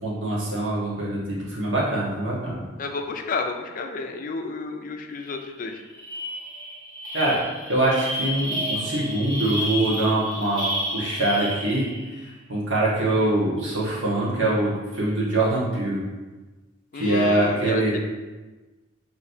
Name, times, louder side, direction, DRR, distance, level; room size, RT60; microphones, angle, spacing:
voice 1, 0.0-2.6 7.1-7.4 7.7-10.7 10.9-11.9 12.5-16.0 16.9-17.9, right 2 dB, 75° right, -6 dB, 1.4 m, -23 dB
voice 2, 2.8-5.8 16.9-18.0, left 4 dB, 45° left, 4 dB, 0.4 m, -31 dB
sound 1, 5.3-5.4 5.7-12.1, equal, 25° right, 1.2 m, -31 dB
6.0 x 3.1 x 2.7 m, 1.2 s
head